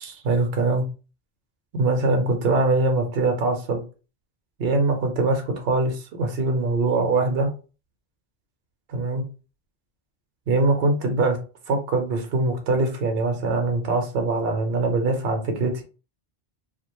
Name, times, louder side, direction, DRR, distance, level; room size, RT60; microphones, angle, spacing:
voice 1, 0.0-0.9 1.7-3.8 4.6-7.5 8.9-9.2 10.5-11.4 11.7-15.8, right 3 dB, 70° right, 4 dB, 0.9 m, -23 dB
2.4 x 2.1 x 2.9 m, 0.34 s
omnidirectional pair, 1.1 m